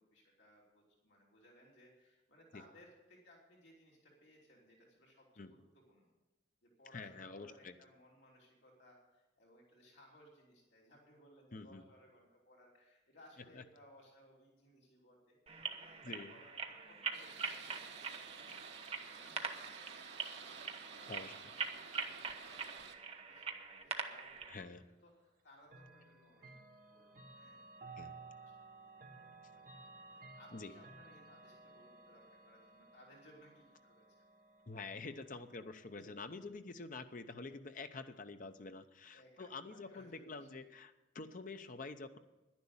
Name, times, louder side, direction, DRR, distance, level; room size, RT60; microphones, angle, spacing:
voice 1, 0.0-6.1 6.6-22.5 23.3-23.4 23.8-26.5 26.9-34.3 36.0-36.4 39.1-40.7, equal, 75° left, -3 dB, 3.1 m, -64 dB
voice 2, 6.9-7.7 11.5-11.8 13.5-13.6 16.0-16.3 21.1-21.3 24.5-24.8 28.0-28.1 30.5-30.7 34.7-42.2, left 3 dB, 45° left, 9 dB, 0.7 m, -47 dB
sound 1, 15.5-24.6, right 5 dB, 35° right, 0.9 m, -44 dB
sound 2, 17.1-22.9, right 6 dB, 70° right, 1.2 m, -52 dB
Chime / Clock, 25.7-36.5, right 3 dB, 50° right, 1.3 m, -57 dB
11.0 x 10.5 x 7.1 m, 1.1 s
head